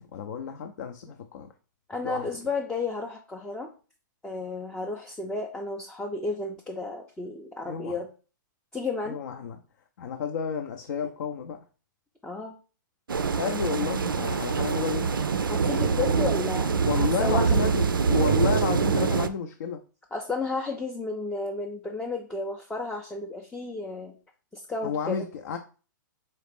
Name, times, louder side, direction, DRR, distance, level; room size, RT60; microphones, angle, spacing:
voice 1, 0.1-1.5 2.0-2.3 7.7-7.9 9.1-9.6 10.0-11.6 13.4-15.2 16.9-19.8 24.8-25.6, left 7 dB, 60° left, 0.5 m, -31 dB
voice 2, 1.9-3.7 4.2-8.1 8.7-9.2 12.2-12.6 15.5-17.6 20.1-24.2 24.5-25.3, left 3 dB, 5° left, 0.4 m, -32 dB
sound 1, 13.1-19.3, right 5 dB, 90° right, 0.4 m, -24 dB
4.1 x 2.4 x 3.4 m
hypercardioid pair, 125°, 11 cm